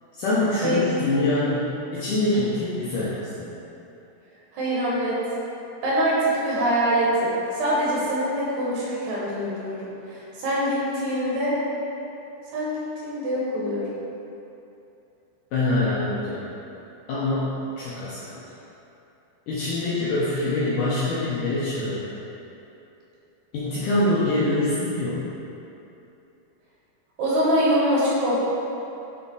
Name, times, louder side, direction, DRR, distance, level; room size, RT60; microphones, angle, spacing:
voice 1, 0.2-3.5 15.5-16.4 17.1-18.4 19.5-22.1 23.5-25.3, left 2 dB, 85° left, -9 dB, 1.8 m, -25 dB
voice 2, 4.5-5.1 5.8-11.6 12.5-13.8 27.2-28.4, equal, 70° right, -7 dB, 3.3 m, -24 dB
9.4 x 3.5 x 4.0 m, 2.9 s
omnidirectional pair, 5.0 m